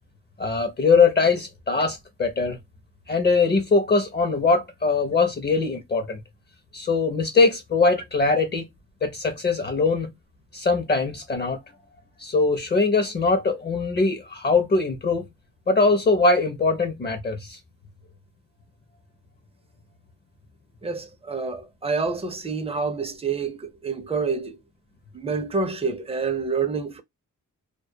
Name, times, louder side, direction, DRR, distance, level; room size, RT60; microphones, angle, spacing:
voice 1, 0.4-2.6 3.1-6.2 6.7-8.6 9.0-10.1 10.5-11.6 12.2-15.3 15.7-17.6, left 4 dB, 35° left, 0.5 m, -22 dB
voice 2, 20.8-24.6 25.1-27.0, right 4 dB, 20° right, 0.5 m, -27 dB
2.2 x 2.1 x 2.6 m
wide cardioid pair, 140°, 31 cm